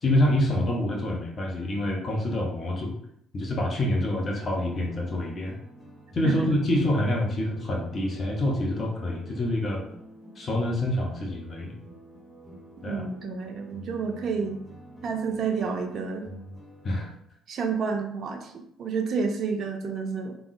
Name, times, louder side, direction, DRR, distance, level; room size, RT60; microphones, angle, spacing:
voice 1, 0.0-3.0 3.3-5.5 6.1-9.8 10.4-11.8 12.8-13.0 16.8-17.1, left 1 dB, 40° left, -1 dB, 0.6 m, -26 dB
sound 1, 3.9-17.1, equal, 5° left, 0.8 m, -48 dB
voice 2, 12.9-14.6 15.0-16.3 17.5-18.5 18.8-20.4, right 5 dB, 50° right, 4 dB, 0.4 m, -29 dB
3.5 x 2.1 x 2.4 m, 0.73 s
figure-of-eight pair, 50°, 0 cm